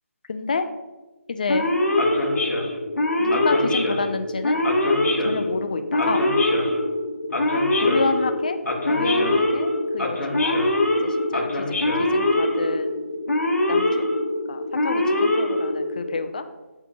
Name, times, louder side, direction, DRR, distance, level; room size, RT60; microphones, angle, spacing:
voice 1, 0.3-0.7 1.3-1.7 3.2-4.6 5.2-6.3 7.8-8.6 8.9-10.6 11.0-11.7 12.0-13.0 13.7-14.0 14.5-16.5, left 4 dB, 35° left, 10 dB, 0.3 m, -29 dB
Male speech man speaking / Siren, 1.5-16.2, left 1 dB, 85° left, 1.0 m, -23 dB
7.8 x 4.4 x 2.7 m, 1.1 s
hypercardioid pair, 170°, 8 cm